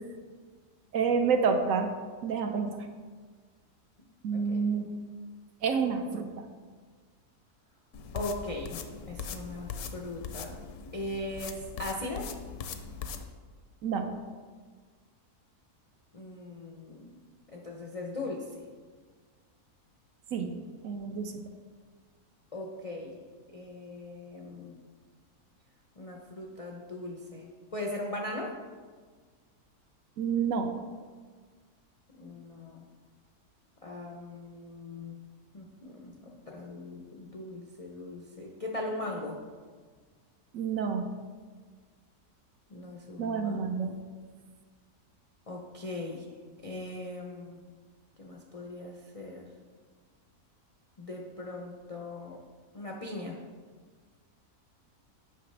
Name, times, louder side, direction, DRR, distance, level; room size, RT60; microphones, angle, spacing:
voice 1, 0.9-2.0 2.2-2.7 4.2-4.9 5.6-6.5 13.8-14.1 20.3-20.5 20.8-21.4 30.2-30.7 40.5-41.0 43.2-43.9, right 5 dB, 65° right, 5 dB, 0.9 m, -28 dB
voice 2, 4.3-4.8 8.1-10.6 10.9-12.3 16.1-17.2 17.5-18.6 22.5-23.2 23.5-24.8 26.0-28.6 32.2-32.8 33.8-35.1 35.5-39.4 42.7-43.8 45.5-46.2 46.6-47.6 48.2-49.5 51.0-52.4 52.7-53.4, left 2 dB, 55° left, -1 dB, 0.3 m, -39 dB
sound 1, 7.9-13.2, left 6 dB, 75° left, 1.1 m, -41 dB
8.6 x 5.7 x 3.3 m, 1.5 s
omnidirectional pair, 1.6 m